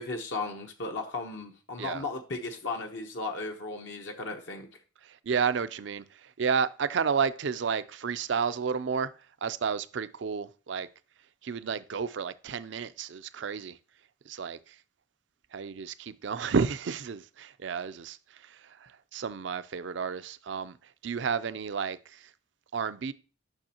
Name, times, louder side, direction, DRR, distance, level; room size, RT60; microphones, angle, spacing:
voice 1, 0.0-4.7, left 3 dB, 65° left, 1.0 m, -35 dB
voice 2, 5.0-9.1 9.4-10.9 11.4-13.8 14.3-14.8 15.5-22.3 22.7-23.1, right 6 dB, 65° right, 0.4 m, -31 dB
8.9 x 6.1 x 2.9 m
head